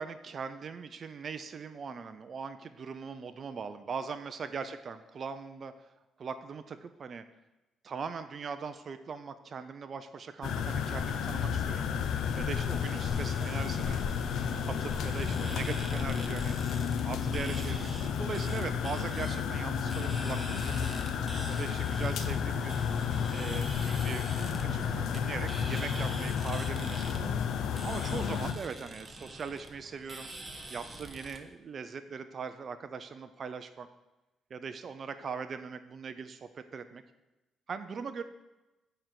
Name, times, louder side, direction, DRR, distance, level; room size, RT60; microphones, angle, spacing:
voice 1, 0.0-5.9 6.2-7.2 7.8-11.9 12.4-14.0 14.7-16.6 17.0-20.9 21.5-22.8 23.3-24.2 24.7-27.3 27.8-30.3 30.7-33.9 34.5-37.0 37.7-38.2, right 5 dB, 50° right, 9 dB, 0.5 m, -40 dB
sound 1, 10.4-28.5, left 7 dB, 80° left, 0.7 m, -32 dB
sound 2, 12.1-31.4, right 2 dB, 15° right, 1.3 m, -45 dB
9.0 x 4.5 x 7.6 m, 1.0 s
cardioid pair, 90°, 0 cm